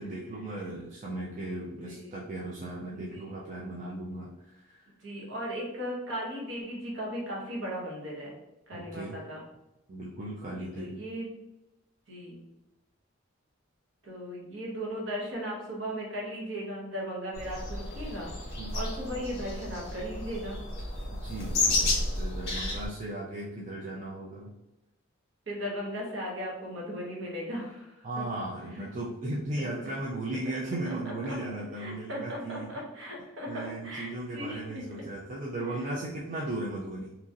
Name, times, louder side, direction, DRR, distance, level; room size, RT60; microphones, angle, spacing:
voice 1, 0.0-4.9 8.7-9.2 9.9-11.0 18.6-18.8 21.2-24.5 28.0-32.7 33.5-37.2, right 2 dB, 35° right, -5 dB, 0.4 m, -36 dB
voice 2, 1.7-2.1 2.9-3.2 5.0-8.4 8.7-9.4 10.5-11.3 12.1-12.4 14.0-18.3 18.7-20.6 25.5-28.2 28.7-28.9 29.6-29.7 31.3-31.4 31.7-34.6 35.9-36.0, equal, 60° right, -3 dB, 1.0 m, -37 dB
sound 1, 17.3-22.9, left 2 dB, 55° left, 0.9 m, -32 dB
2.9 x 2.6 x 2.5 m, 0.95 s
head